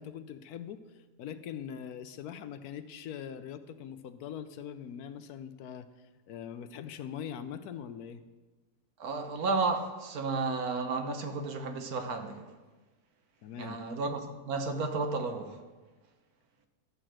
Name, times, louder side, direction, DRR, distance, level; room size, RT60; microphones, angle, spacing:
voice 1, 0.0-8.2 13.4-13.8, left 8 dB, 75° left, 1.1 m, -42 dB
voice 2, 9.0-12.5 13.6-15.6, right 3 dB, 70° right, 1.4 m, -32 dB
12.5 x 4.5 x 7.5 m
omnidirectional pair, 1.7 m